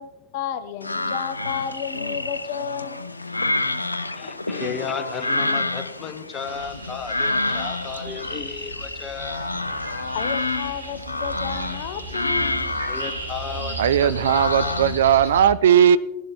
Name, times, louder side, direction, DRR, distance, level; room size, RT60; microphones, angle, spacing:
voice 1, 0.0-3.0 10.1-12.6, left 8 dB, 50° left, 12 dB, 0.8 m, -32 dB
sound 1, 0.8-15.1, left 2 dB, 80° left, 0.6 m, -28 dB
voice 2, 4.2-9.6 12.9-13.7 14.0-14.8, left 6 dB, 25° left, 9 dB, 1.2 m, -34 dB
sound 2, 6.4-15.5, right 1 dB, 85° right, 2.6 m, -36 dB
voice 3, 13.8-16.0, right 9 dB, 60° right, 15 dB, 0.4 m, -17 dB
19.0 x 11.5 x 2.9 m, 1.0 s
figure-of-eight pair, 90°, 0 cm